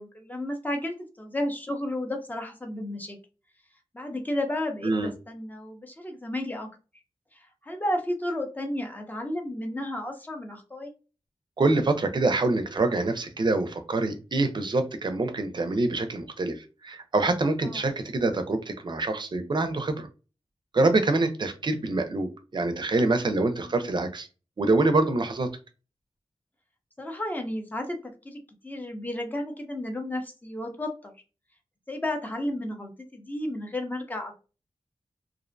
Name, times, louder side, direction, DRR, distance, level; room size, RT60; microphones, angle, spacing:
voice 1, 0.0-3.2 3.9-6.7 7.3-10.9 17.6-17.8 23.6-23.9 27.0-31.1 31.9-34.3, left 1 dB, 15° left, 4 dB, 0.6 m, -33 dB
voice 2, 11.6-20.1 20.7-24.3 24.6-25.5, right 2 dB, 45° right, 8 dB, 0.5 m, -25 dB
2.5 x 2.0 x 2.5 m, 0.33 s
cardioid pair, 60°, 11 cm